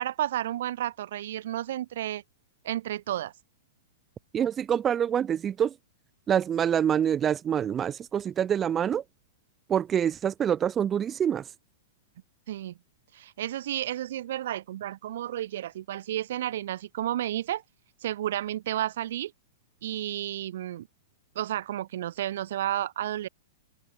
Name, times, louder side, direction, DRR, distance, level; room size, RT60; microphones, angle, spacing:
voice 1, 0.0-2.2 2.6-3.3 12.5-12.8 13.1-17.6 18.0-19.3 19.8-20.9 21.4-23.3, right 12 dB, 65° right, 7.0 m, -32 dB
voice 2, 4.3-5.7 6.3-9.0 9.7-11.4, right 9 dB, 15° right, 1.7 m, -26 dB
hypercardioid pair, 155°, 0 cm